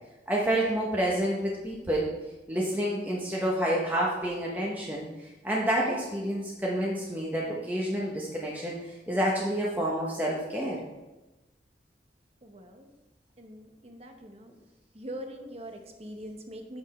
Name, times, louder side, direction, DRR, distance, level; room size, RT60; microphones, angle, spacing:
voice 1, 0.3-2.1 2.5-8.8 9.1-10.8, right 1 dB, 10° right, -4 dB, 0.9 m, -29 dB
voice 2, 12.4-12.9 13.4-14.5 14.9-16.8, right 1 dB, 35° right, 4 dB, 0.9 m, -42 dB
7.6 x 6.0 x 4.3 m, 1.1 s
head